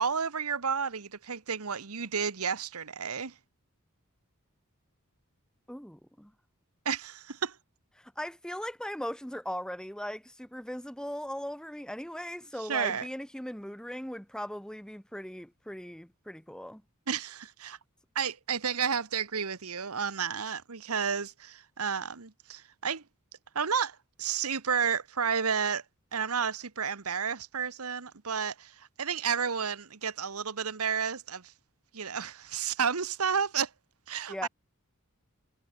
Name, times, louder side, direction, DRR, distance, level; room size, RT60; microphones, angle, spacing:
voice 1, 0.0-3.3 6.8-7.6 12.6-13.1 17.1-17.8 18.1-23.0 23.5-25.8 26.1-31.5 31.9-33.7 34.1-34.5, right 6 dB, 90° right, 1.3 m, -31 dB
voice 2, 5.7-6.3 8.0-16.8 34.3-34.5, equal, 5° left, 1.8 m, -39 dB
head